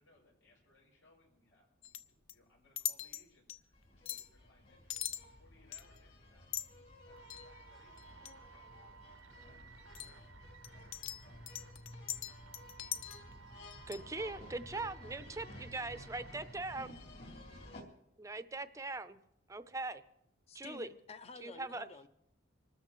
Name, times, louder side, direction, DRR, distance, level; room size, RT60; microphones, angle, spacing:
voice 1, 0.0-6.5 7.0-9.8 14.2-14.7 15.1-15.3 15.5-15.7 16.0-16.6, left 2 dB, 85° left, -1 dB, 7.0 m, -68 dB
sound 1, 1.8-2.3 2.8-3.2 3.5-3.6 4.1-4.3 4.9-5.2 5.7-6.0 6.5-6.7 7.3-7.5 8.0-8.3 9.9-10.2 10.6-13.3 13.6-14.0, left 10 dB, 70° left, 0.7 m, -41 dB
sound 2, 3.7-17.8, left 1 dB, 55° left, 3.4 m, -54 dB
sound 3, 7.1-16.8, right 7 dB, 80° right, 0.7 m, -59 dB
voice 2, 13.9-16.9 18.2-19.2 19.5-20.0 20.5-20.9 21.4-21.9, right 2 dB, 15° right, 12 dB, 0.5 m, -41 dB
voice 3, 20.5-22.1, left 4 dB, 30° left, 12 dB, 0.5 m, -51 dB
25.5 x 13.5 x 3.1 m, 0.79 s
head